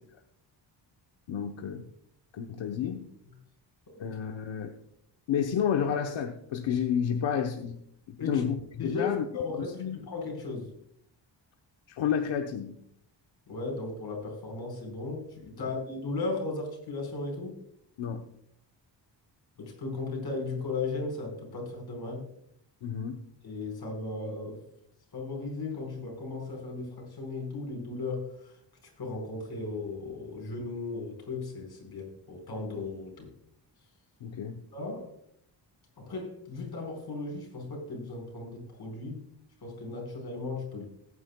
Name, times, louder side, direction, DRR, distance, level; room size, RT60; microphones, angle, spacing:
voice 1, 1.3-1.9 2.3-3.0 4.0-4.7 5.3-7.8 8.1-9.2 9.6-10.0 11.9-12.7 15.6-15.7 18.0-18.2 22.8-23.2 34.2-34.6, left 8 dB, 85° left, 4 dB, 1.0 m, -30 dB
voice 2, 8.8-10.7 13.5-17.6 19.6-22.3 23.4-24.6 25.1-28.5 28.8-33.3 34.7-35.1 36.0-39.2 39.6-40.8, left 3 dB, 55° left, 1 dB, 4.8 m, -36 dB
20.0 x 9.7 x 2.3 m, 0.70 s
wide cardioid pair, 125°, 45 cm